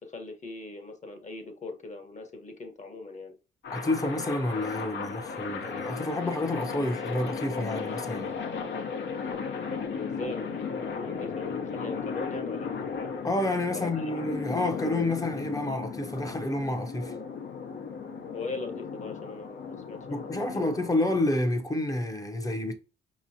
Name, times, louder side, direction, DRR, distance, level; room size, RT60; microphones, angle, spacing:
voice 1, 0.0-3.3 9.3-12.7 13.7-14.1 18.3-20.7, left 3 dB, 35° left, 1.2 m, -40 dB
sound 1, 3.6-21.4, left 5 dB, 65° left, 1.0 m, -36 dB
voice 2, 3.7-8.3 13.2-17.1 20.1-22.7, left 1 dB, 15° left, 0.8 m, -29 dB
5.1 x 3.0 x 2.7 m
cardioid pair, 90°, 20 cm